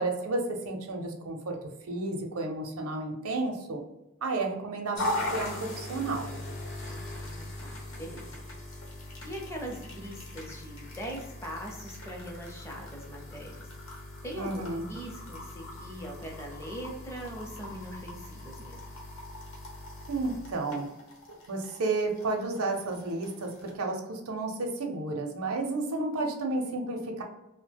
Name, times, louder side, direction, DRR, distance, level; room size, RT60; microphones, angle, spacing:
voice 1, 0.0-1.6 1.9-3.8 4.2-6.3 14.3-14.9 20.1-20.9 21.5-27.2, right 2 dB, 75° right, 2 dB, 0.6 m, -32 dB
sound 1, 4.9-23.7, left 1 dB, 65° left, 0.9 m, -40 dB
voice 2, 6.9-8.5 9.2-18.8, equal, 10° left, -1 dB, 0.7 m, -42 dB
2.8 x 2.1 x 3.4 m, 0.90 s
head